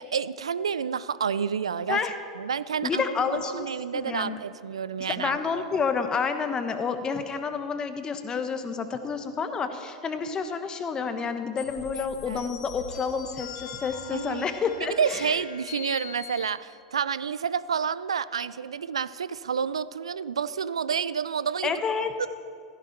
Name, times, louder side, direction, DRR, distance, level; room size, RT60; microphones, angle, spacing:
voice 1, 0.0-2.0 2.4-5.4 11.9-12.5 14.1-14.4 14.8-21.8 22.2-22.3, right 7 dB, 80° right, 17 dB, 0.4 m, -29 dB
voice 2, 2.8-4.4 5.0-15.4 21.6-22.1, left 5 dB, 25° left, 8 dB, 1.3 m, -29 dB
sound 1, 11.6-16.5, left 7 dB, 50° left, 2.8 m, -42 dB
16.0 x 14.0 x 4.6 m, 2.2 s
figure-of-eight pair, 85°, 3 cm